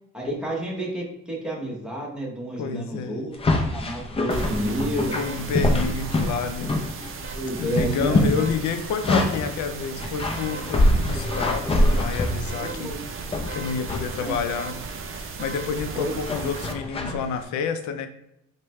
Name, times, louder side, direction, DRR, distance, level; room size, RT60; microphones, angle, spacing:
voice 1, 0.1-3.4 3.6-5.1 7.3-8.3 12.6-13.0 14.2-14.4 15.9-16.1, right 1 dB, 5° right, -3 dB, 0.9 m, -30 dB
voice 2, 2.6-3.3 5.2-6.8 7.6-13.0 13.2-14.8 15.1-18.1, left 6 dB, 80° left, 8 dB, 0.5 m, -29 dB
sound 1, 3.3-7.2 7.5-9.5 10.0-12.8 13.3-14.1 14.5-14.8 16.2-17.2, left 1 dB, 20° left, 0.4 m, -24 dB
sound 2, 4.3-16.7, right 4 dB, 45° right, 0.5 m, -36 dB
4.8 x 2.2 x 3.0 m, 0.79 s
cardioid pair, 130°, 29 cm